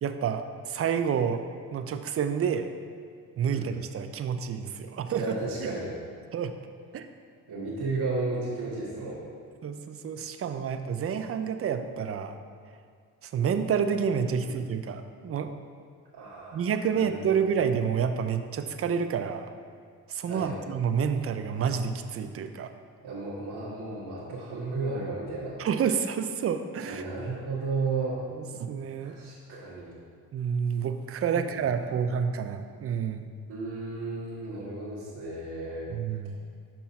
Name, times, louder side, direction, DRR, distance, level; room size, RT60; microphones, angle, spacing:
voice 1, 0.0-1.4 1.7-2.7 3.4-5.3 5.6-5.7 6.3-6.5 6.9-7.1 9.6-12.4 13.2-15.5 16.5-19.5 20.1-22.7 25.6-27.0 28.3-29.2 30.3-33.3 35.9-36.4, right 7 dB, 30° right, 9 dB, 0.5 m, -29 dB
voice 2, 5.1-5.9 7.5-9.2 14.3-14.5 16.1-17.4 20.3-20.6 23.0-25.6 26.8-28.2 29.0-29.9 31.3-31.4 33.5-35.9, right 3 dB, 60° right, -8 dB, 1.6 m, -34 dB
6.0 x 5.4 x 4.3 m, 2.1 s
hypercardioid pair, 55°, 44 cm